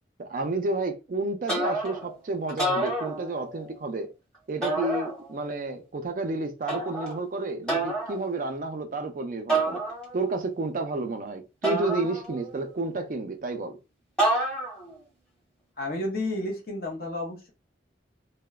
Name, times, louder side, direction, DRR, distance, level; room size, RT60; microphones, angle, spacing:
voice 1, 0.2-4.1 4.5-9.8 10.1-13.8, right 2 dB, 45° right, 0.4 m, -31 dB
sound 1, 1.5-2.1 2.5-3.6 4.6-5.5 6.7-7.2 7.7-8.2 9.5-10.3 11.6-12.6 14.2-14.9, right 2 dB, 5° left, 0.9 m, -28 dB
voice 2, 15.8-17.5, left 1 dB, 55° left, 0.7 m, -31 dB
2.9 x 2.0 x 2.3 m
head